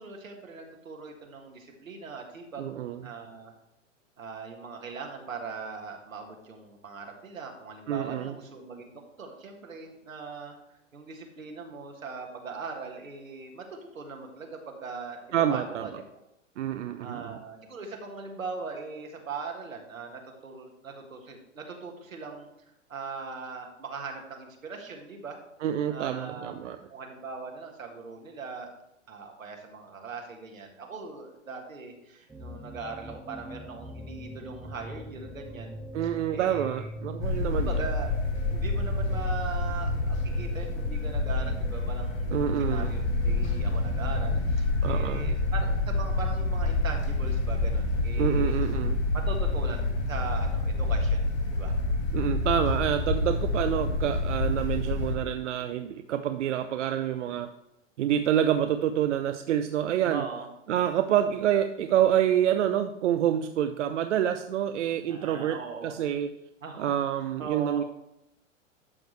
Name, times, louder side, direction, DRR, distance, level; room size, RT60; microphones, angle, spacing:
voice 1, 0.0-3.5 4.2-10.6 10.9-16.2 17.0-22.5 22.9-25.4 25.9-26.5 26.9-28.7 29.1-36.9 37.5-48.5 49.1-51.8 60.1-60.5 65.1-66.0 66.6-66.9 67.2-67.8, right 4 dB, 85° right, 2 dB, 1.9 m, -40 dB
voice 2, 2.6-3.0 7.9-8.3 15.3-15.9 16.6-17.3 25.6-26.8 35.9-37.7 42.3-42.9 44.8-45.3 48.2-49.0 52.1-57.5 58.0-60.2 60.7-65.6 65.8-66.3 66.8-67.8, right 10 dB, 65° right, 8 dB, 0.6 m, -27 dB
sound 1, 32.3-44.3, equal, 5° right, 0.4 m, -42 dB
sound 2, 37.2-55.2, left 2 dB, 80° left, 3.7 m, -28 dB
12.0 x 6.3 x 3.2 m, 0.84 s
hypercardioid pair, 105°, 39 cm